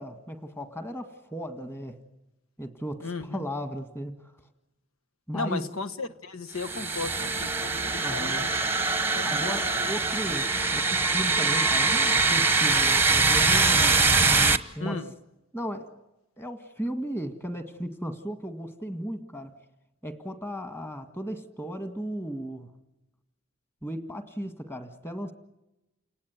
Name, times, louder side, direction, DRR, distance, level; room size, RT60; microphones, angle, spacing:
voice 1, 0.0-2.0 2.6-4.1 5.3-5.6 8.0-8.5 9.2-14.0 14.8-15.1 15.5-16.0 16.4-19.6 20.0-22.7 23.8-25.3, equal, 10° left, 1.8 m, -35 dB
voice 2, 3.0-3.4 5.3-8.5 9.1-9.5 9.8-9.9 14.8-15.1, left 3 dB, 80° left, 1.3 m, -35 dB
sound 1, 6.6-14.6, right 3 dB, 10° right, 1.0 m, -23 dB
29.5 x 19.0 x 9.4 m
head